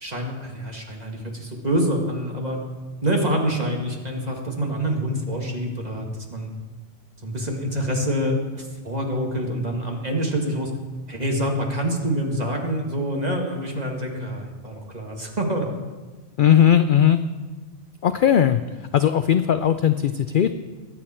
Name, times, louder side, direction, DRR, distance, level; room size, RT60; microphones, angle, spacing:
voice 1, 0.0-2.6 3.0-6.5 7.2-10.7 11.1-15.7, equal, 30° right, 1 dB, 2.0 m, -26 dB
voice 2, 16.4-17.2 18.0-18.6 18.9-20.5, left 9 dB, 60° left, 10 dB, 0.5 m, -18 dB
21.5 x 8.7 x 4.4 m, 1.3 s
omnidirectional pair, 1.3 m